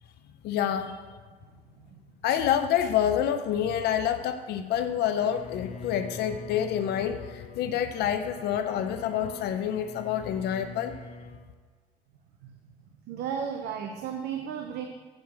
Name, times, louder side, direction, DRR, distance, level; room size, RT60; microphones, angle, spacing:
voice 1, 0.4-1.0 2.2-11.0, left 9 dB, 75° left, 8 dB, 0.6 m, -27 dB
voice 2, 1.4-2.0 12.4-12.7 13.0-14.9, right 7 dB, 80° right, 4 dB, 0.7 m, -35 dB
Bowed string instrument, 5.2-11.5, left 3 dB, 40° left, 0.9 m, -45 dB
7.6 x 4.8 x 6.8 m, 1.4 s
cardioid pair, 110°, 17 cm